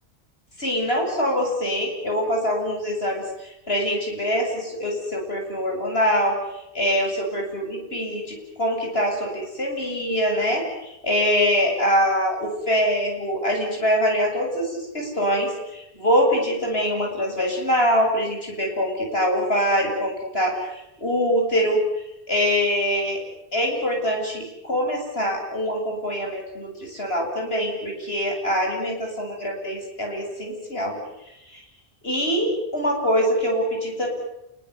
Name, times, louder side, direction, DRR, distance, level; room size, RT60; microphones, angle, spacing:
voice 1, 0.6-6.4 6.7-23.2 23.5-31.0 31.5-31.6 32.0-34.1, equal, 70° left, 1 dB, 8.5 m, -24 dB
29.0 x 20.5 x 9.6 m, 0.89 s
omnidirectional pair, 1.1 m